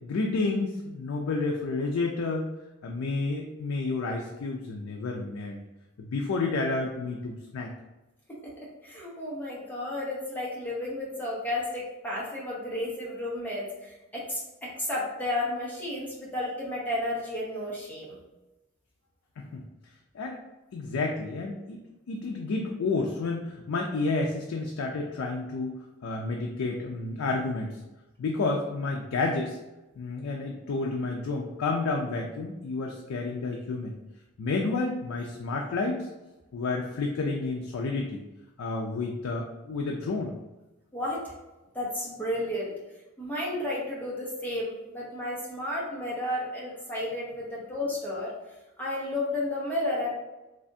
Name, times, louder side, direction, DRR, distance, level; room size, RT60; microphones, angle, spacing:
voice 1, 0.0-2.5 2.8-5.6 6.0-7.7 19.4-19.6 20.1-20.4 20.7-21.8 22.1-27.8 28.2-29.6 30.0-34.0 34.4-36.1 36.5-38.2 38.6-40.3, left 3 dB, 85° left, 0 dB, 0.4 m, -30 dB
voice 2, 8.6-18.2 40.9-41.2 41.7-42.7 43.2-48.3 48.8-50.1, left 1 dB, 10° left, -6 dB, 0.8 m, -32 dB
3.3 x 2.4 x 2.6 m, 1.0 s
head